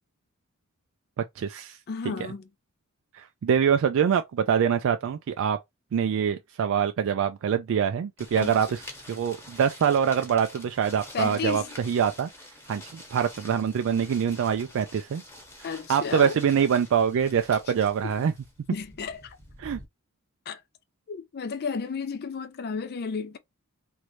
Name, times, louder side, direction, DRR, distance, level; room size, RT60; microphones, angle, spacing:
voice 1, 1.4-1.8 2.0-2.1 3.1-5.6 5.9-8.8 9.1-12.3 12.7-15.2 15.9-18.3 19.6-19.8, right 7 dB, 65° right, 0.3 m, -24 dB
voice 2, 1.9-2.5 8.4-8.6 11.1-11.7 15.6-16.4 18.0-18.1 18.7-19.4 20.5-20.6 21.1-23.4, left 5 dB, 45° left, 0.4 m, -32 dB
sound 1, 8.2-19.8, left 1 dB, 10° left, 0.9 m, -47 dB
3.1 x 2.6 x 3.0 m
head